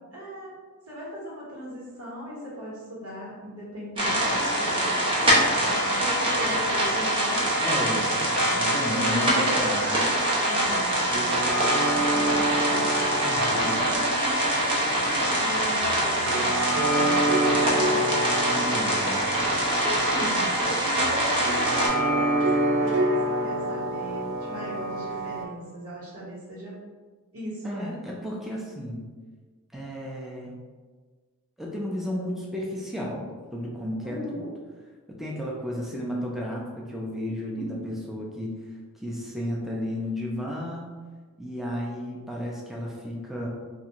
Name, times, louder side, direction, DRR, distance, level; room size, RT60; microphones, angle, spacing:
voice 1, 0.1-0.5 0.9-7.6 8.8-12.9 13.4-18.2 19.6-26.8 27.3-28.0 34.0-34.5 37.3-37.9, equal, 85° right, -5 dB, 1.2 m, -37 dB
sound 1, 4.0-21.9, right 1 dB, 25° right, 0.7 m, -24 dB
voice 2, 7.6-9.8 13.2-13.9 18.5-19.4 27.6-29.0 29.7-30.5 31.6-34.5 35.1-38.5 38.9-40.9 41.4-43.5, equal, ahead, -4 dB, 0.4 m, -33 dB
sound 2, 10.2-25.4, right 1 dB, 60° right, 0.5 m, -28 dB
3.4 x 2.4 x 2.9 m, 1.4 s
head